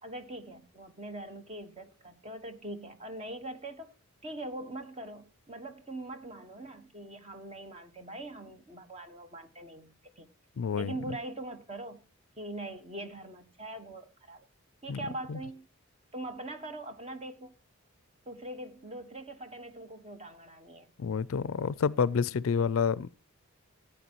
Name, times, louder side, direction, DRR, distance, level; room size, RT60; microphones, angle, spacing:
voice 1, 0.0-3.9 4.2-10.3 10.7-12.0 12.4-14.4 14.8-15.7 16.1-17.5 18.3-20.9, right 1 dB, 30° right, 1.3 m, -42 dB
voice 2, 10.6-10.9 14.9-15.0 15.3-15.4 21.0-23.1, left 6 dB, 65° left, 0.4 m, -28 dB
15.0 x 8.7 x 2.9 m
head